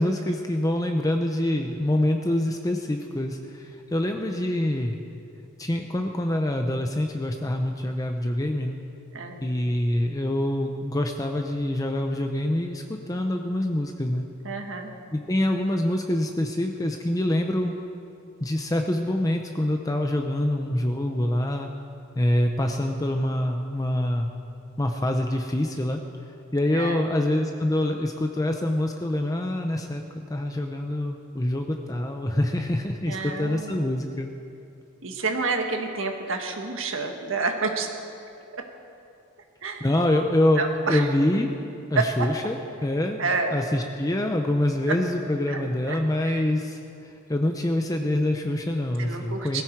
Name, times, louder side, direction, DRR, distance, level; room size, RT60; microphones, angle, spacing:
voice 1, 0.0-5.0 5.6-8.8 9.4-14.3 15.1-17.7 18.4-21.7 22.2-24.3 24.8-26.0 26.5-30.0 30.3-34.3 39.8-41.5 41.9-43.2 43.5-49.6, left 1 dB, 15° left, 4 dB, 0.7 m, -25 dB
voice 2, 9.1-9.4 14.4-14.9 26.7-27.0 33.1-33.9 35.0-37.9 38.5-38.6 39.6-39.9 40.6-41.1 41.9-42.3 43.2-43.6 44.9-45.0 45.5-45.6 45.9-46.4 49.0-49.6, right 4 dB, 65° right, 4 dB, 1.7 m, -29 dB
20.5 x 15.0 x 4.6 m, 2.6 s
head